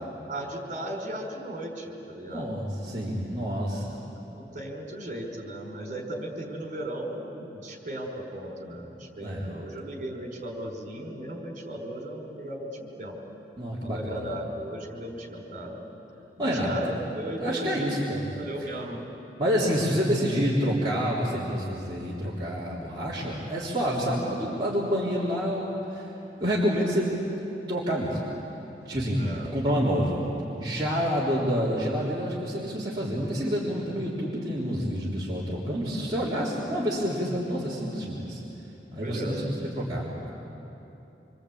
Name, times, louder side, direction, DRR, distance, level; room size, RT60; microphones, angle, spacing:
voice 1, 0.3-2.5 3.7-3.8 4.3-13.2 13.8-15.8 16.4-17.9 18.4-19.1 29.1-29.5 30.9-31.1 39.0-39.5, right 1 dB, 45° right, 1 dB, 4.7 m, -36 dB
voice 2, 2.3-4.0 9.2-9.5 13.6-14.3 16.4-16.7 17.4-18.7 19.4-26.1 26.4-27.1 27.7-28.3 28.8-29.2 29.5-30.2 30.6-38.4 38.9-40.1, equal, 25° right, -8 dB, 3.5 m, -28 dB
26.5 x 24.5 x 8.6 m, 3.0 s
head